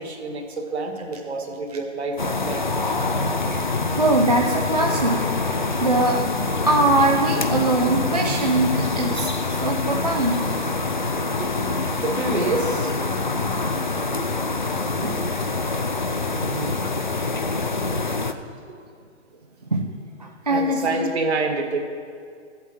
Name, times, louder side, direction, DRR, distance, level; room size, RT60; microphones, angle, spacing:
voice 1, 0.0-2.6 8.7-9.0 12.0-12.9 14.2-14.3 15.2-15.3 16.3-16.7 17.9-18.0 20.5-21.9, right 3 dB, 60° right, 3 dB, 1.7 m, -28 dB
sound 1, 2.2-18.3, left 3 dB, 40° left, 0.4 m, -25 dB
voice 2, 3.9-6.2 6.6-9.3 9.6-10.6 15.0-15.2 19.7-19.9 20.2-21.1, right 2 dB, 35° right, 0 dB, 0.5 m, -22 dB
12.5 x 8.2 x 4.4 m, 2.2 s
hypercardioid pair, 180°, 37 cm